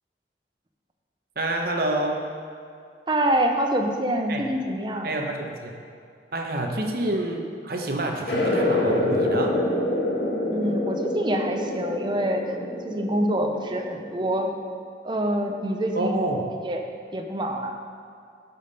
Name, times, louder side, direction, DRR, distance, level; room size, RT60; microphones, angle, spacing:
voice 1, 1.4-2.2 4.3-4.4 5.0-5.7 6.3-9.6 15.9-16.4, right 2 dB, 55° right, 2 dB, 0.9 m, -28 dB
voice 2, 3.1-5.1 6.9-7.0 10.5-12.4 12.8-14.5 15.0-16.2 16.6-16.8 17.1-17.7, right 1 dB, 25° right, 3 dB, 0.7 m, -26 dB
sound 1, 8.3-14.4, left 1 dB, 85° left, 1.5 m, -26 dB
12.0 x 5.4 x 4.1 m, 2.3 s
head